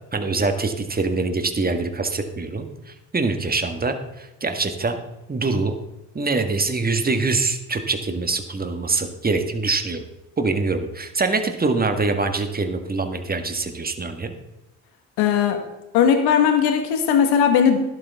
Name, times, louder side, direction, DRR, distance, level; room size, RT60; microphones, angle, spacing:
voice 1, 0.1-5.0 5.3-5.8 6.1-10.0 10.4-14.3, right 3 dB, 25° right, 6 dB, 1.7 m, -24 dB
voice 2, 15.2-15.6 15.9-17.8, left 8 dB, 80° left, 6 dB, 1.7 m, -18 dB
12.0 x 11.5 x 3.6 m, 0.95 s
supercardioid pair, 60°, 39 cm